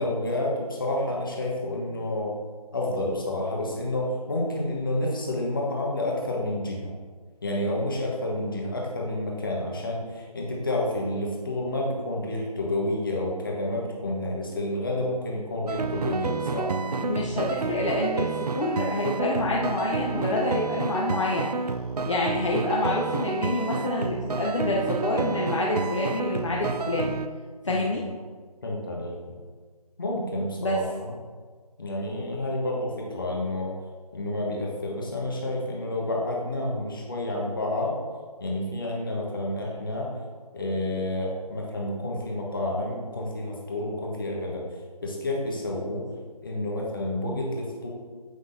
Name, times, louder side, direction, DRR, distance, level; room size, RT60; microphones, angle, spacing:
voice 1, 0.0-2.3 2.7-6.9 7.4-16.7 27.6-27.9 28.6-29.4 30.0-31.1 31.8-33.7 34.1-38.0 38.4-40.1 40.5-44.6 45.0-46.1 46.4-47.9, left 1 dB, 35° left, -2 dB, 1.3 m, -29 dB
sound 1, 15.7-27.3, right 4 dB, 80° right, 0.5 m, -29 dB
voice 2, 17.0-21.5 22.1-27.2 27.6-28.1 30.6-30.8, left 2 dB, 50° left, -4 dB, 0.8 m, -27 dB
8.0 x 5.8 x 2.7 m, 1.5 s
figure-of-eight pair, 170°, 20 cm